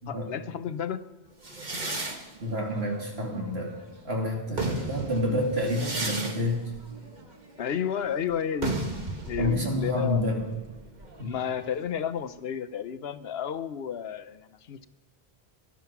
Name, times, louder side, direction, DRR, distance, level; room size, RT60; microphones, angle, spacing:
voice 1, 0.1-1.1 4.5-5.4 7.6-8.7 9.3-10.4 11.2-14.9, left 8 dB, 70° left, 12 dB, 1.0 m, -32 dB
sound 1, 1.4-3.9 4.3-11.9, right 2 dB, 45° right, 1.7 m, -35 dB
voice 2, 2.4-3.8 4.0-6.6 9.4-10.5 11.2-11.3, left 1 dB, 75° right, -1 dB, 3.2 m, -28 dB
18.5 x 12.5 x 5.9 m, 1.1 s
omnidirectional pair, 1.1 m